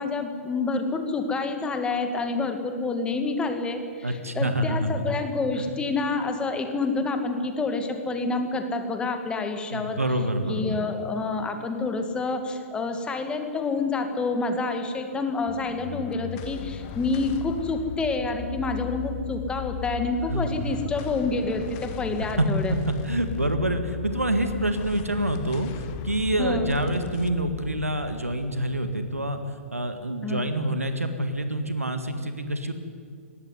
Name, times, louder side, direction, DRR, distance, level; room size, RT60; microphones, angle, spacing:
voice 1, 0.0-10.0 10.5-22.7 26.4-26.7 30.2-30.5, left 3 dB, 10° left, 6 dB, 2.2 m, -28 dB
voice 2, 4.0-5.1 5.6-5.7 9.7-10.8 20.3-20.6 22.4-22.5 22.9-29.4 29.7-32.7, right 1 dB, 90° right, 8 dB, 1.9 m, -27 dB
sound 1, 15.5-30.1, left 8 dB, 35° left, 1.1 m, -37 dB
20.0 x 16.5 x 9.6 m, 2.2 s
figure-of-eight pair, 120°, 8 cm